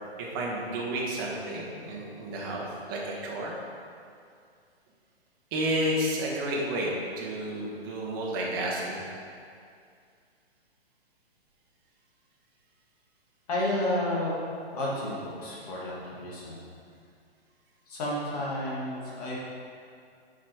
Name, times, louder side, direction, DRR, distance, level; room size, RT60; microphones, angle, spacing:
voice 1, 0.2-3.5 5.5-9.0, right 1 dB, 20° right, -3 dB, 1.0 m, -31 dB
voice 2, 13.5-14.4 14.7-16.7 17.9-19.4, left 1 dB, 35° left, -5 dB, 1.9 m, -31 dB
7.3 x 5.1 x 4.5 m, 2.3 s
hypercardioid pair, 165°, 32 cm